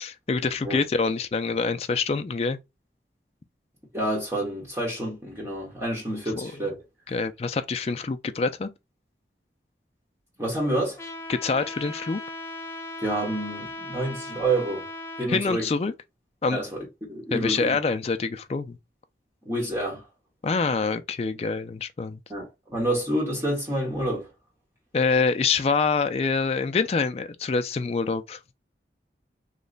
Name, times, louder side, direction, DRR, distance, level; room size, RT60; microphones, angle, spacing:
voice 1, 0.0-2.6 6.4-6.7 7.1-8.7 11.3-12.2 15.3-15.9 16.4-16.6 17.3-18.8 20.4-22.2 24.9-28.4, left 4 dB, 35° left, 0.3 m, -26 dB
voice 2, 3.9-6.8 10.4-11.0 13.0-14.8 15.2-15.7 16.5-17.7 19.4-20.0 22.3-24.3, right 1 dB, 15° right, 1.0 m, -28 dB
Trumpet, 11.0-15.3, left 2 dB, 15° left, 0.7 m, -38 dB
3.1 x 2.1 x 3.8 m
head